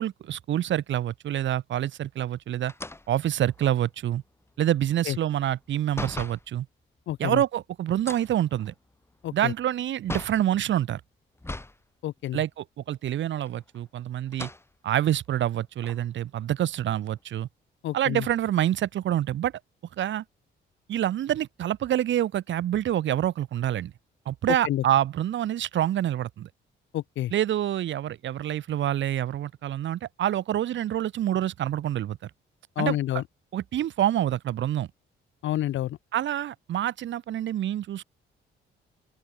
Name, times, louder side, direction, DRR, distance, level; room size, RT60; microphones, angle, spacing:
voice 1, 0.0-2.7 3.1-4.2 4.6-6.7 7.2-8.7 9.3-11.0 12.3-14.5 14.8-17.5 17.9-19.5 20.0-20.2 20.9-23.9 24.3-26.5 27.3-32.3 32.8-33.0 33.5-34.9 36.1-38.0, right 11 dB, 70° right, 1.7 m, -27 dB
sound 1, 2.7-6.5 7.9-10.5 11.4-11.8 12.2-12.3 13.4-13.9 14.3-14.7 15.3-15.4 15.8-17.2, left 2 dB, 10° left, 2.7 m, -40 dB
voice 2, 7.1-7.4 9.2-9.5 12.0-12.4 17.8-18.3 24.5-24.8 26.9-27.3 32.8-33.2 35.4-36.0, left 13 dB, 75° left, 1.1 m, -29 dB
open air
cardioid pair, 90°, 20 cm